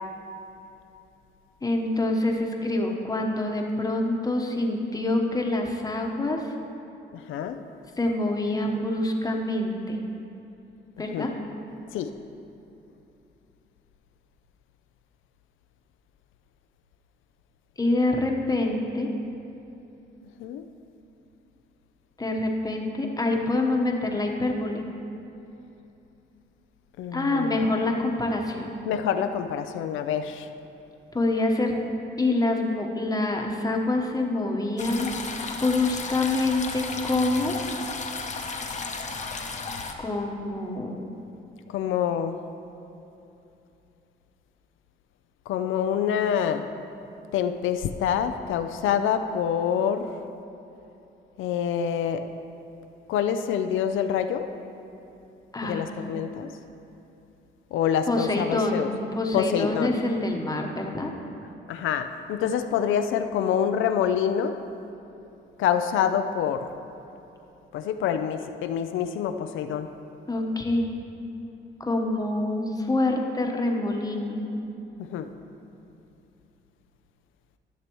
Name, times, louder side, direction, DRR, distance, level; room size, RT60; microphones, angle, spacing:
voice 1, 1.6-6.5 8.0-10.0 11.0-11.3 17.8-19.1 22.2-24.8 27.1-28.7 31.1-31.7 32.2-35.1 35.6-37.6 40.0-41.0 55.5-55.9 58.1-61.1 70.3-70.9 71.8-74.4, left 2 dB, 20° left, 1 dB, 1.1 m, -26 dB
voice 2, 7.1-7.6 11.1-11.3 11.9-12.1 20.4-20.6 27.0-27.6 28.9-30.5 41.7-42.4 45.5-46.6 47.3-50.1 51.4-52.2 53.1-54.5 55.6-56.5 57.7-58.9 59.3-59.9 61.7-64.6 65.6-66.6 67.7-69.9 75.0-75.3, left 8 dB, 80° left, 8 dB, 0.5 m, -26 dB
sound 1, 34.8-39.9, left 4 dB, 35° left, 0.8 m, -34 dB
14.0 x 6.7 x 3.1 m, 2.8 s
cardioid pair, 90°, 20 cm